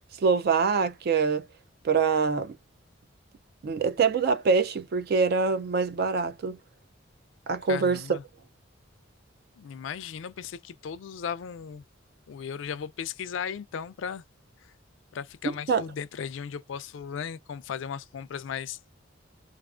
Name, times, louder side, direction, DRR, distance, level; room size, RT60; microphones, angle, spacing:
voice 1, 0.2-1.5 1.8-2.5 3.6-6.6 7.5-8.0 15.7-15.8, right 5 dB, 55° right, 0.4 m, -24 dB
voice 2, 7.7-8.2 9.6-11.8 12.3-14.2 14.6-14.7 15.1-18.8, left 7 dB, 70° left, 0.3 m, -36 dB
2.4 x 2.4 x 2.3 m
head